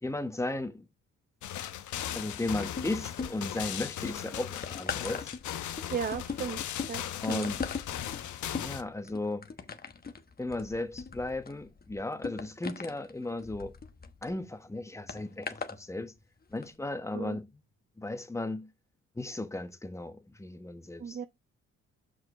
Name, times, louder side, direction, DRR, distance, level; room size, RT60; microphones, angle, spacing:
voice 1, 0.0-0.8 2.1-5.3 7.2-7.6 8.5-9.5 10.4-13.7 14.2-16.1 16.5-17.4 18.0-18.7 19.2-21.3, left 2 dB, 10° left, 1.2 m, -35 dB
sound 1, 1.4-8.8, left 11 dB, 75° left, 1.0 m, -38 dB
sound 2, 2.6-3.6 4.0-14.3 15.1-15.8 16.5-16.6, left 5 dB, 30° left, 1.2 m, -40 dB
voice 2, 5.9-6.6 6.9-7.5 17.1-17.4 21.0-21.3, right 7 dB, 30° right, 0.6 m, -35 dB
6.0 x 5.2 x 4.8 m
cardioid pair, 90°, 30 cm